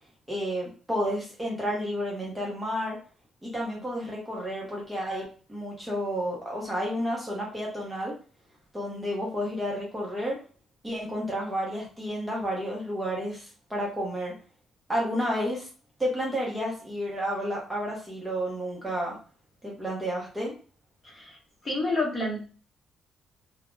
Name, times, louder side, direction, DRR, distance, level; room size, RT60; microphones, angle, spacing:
voice 1, 0.3-3.0 3.4-8.1 8.7-10.4 10.8-14.3 14.9-15.7 16.0-19.2 19.6-20.5, equal, 5° right, -4 dB, 0.6 m, -31 dB
voice 2, 21.6-22.5, left 2 dB, 25° left, -2 dB, 0.9 m, -28 dB
2.2 x 2.1 x 3.0 m, 0.38 s
cardioid pair, 170°, 0 cm